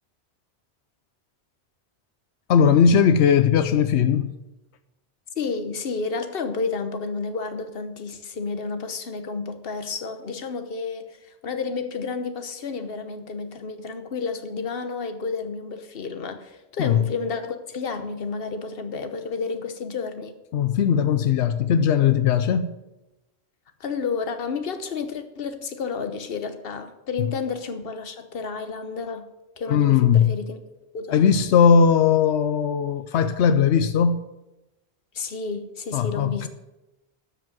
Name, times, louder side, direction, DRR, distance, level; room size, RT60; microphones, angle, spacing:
voice 1, 2.5-4.4 16.8-17.0 20.5-22.7 27.2-27.3 29.7-30.3 31.1-34.2 35.9-36.5, left 7 dB, 90° left, 0.9 m, -19 dB
voice 2, 5.4-20.3 23.8-29.3 29.6-30.6 30.9-31.2 35.1-36.5, left 4 dB, 60° left, 1.2 m, -31 dB
13.0 x 5.1 x 7.7 m
omnidirectional pair, 1.1 m